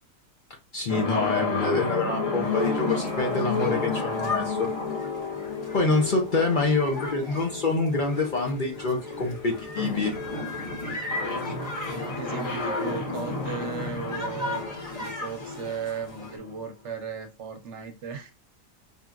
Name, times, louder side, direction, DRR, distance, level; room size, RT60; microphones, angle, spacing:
voice 1, 0.7-4.7 5.7-10.1, left 3 dB, 45° left, 1 dB, 0.7 m, -26 dB
sound 1, 0.9-16.7, left 3 dB, 70° left, 1.4 m, -32 dB
sound 2, 2.4-16.4, left 2 dB, 30° left, 1.2 m, -39 dB
voice 2, 12.1-18.3, right 6 dB, 65° right, 7 dB, 0.9 m, -36 dB
5.3 x 2.8 x 2.4 m, 0.28 s
omnidirectional pair, 1.4 m